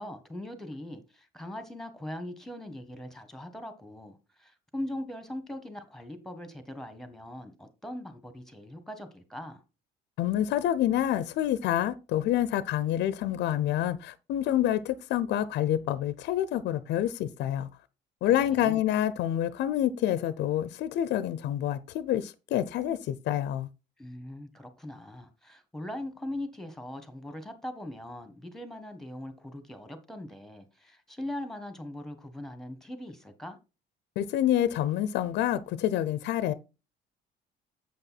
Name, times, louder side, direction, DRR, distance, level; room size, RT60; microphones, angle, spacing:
voice 1, 0.0-9.6 18.2-18.8 24.0-33.6, left 1 dB, ahead, 1.6 m, -40 dB
voice 2, 10.2-17.7 18.2-23.7 34.2-36.5, left 11 dB, 70° left, 0.6 m, -27 dB
7.9 x 5.4 x 4.1 m
cardioid pair, 100°, 18 cm